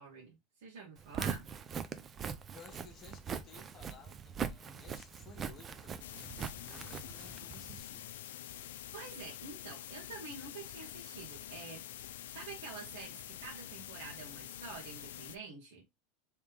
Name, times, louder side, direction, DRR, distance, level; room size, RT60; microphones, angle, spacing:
voice 1, 0.0-1.5 8.9-11.8 12.3-15.8, right 4 dB, 80° right, 1.2 m, -48 dB
Walk footsteps, 1.0-7.8, right 7 dB, 25° right, 0.5 m, -41 dB
voice 2, 2.5-8.1, left 6 dB, 35° left, 1.0 m, -56 dB
sound 1, 6.0-15.4, left 11 dB, 85° left, 0.4 m, -47 dB
3.4 x 3.1 x 3.3 m
supercardioid pair, 130°, 0 cm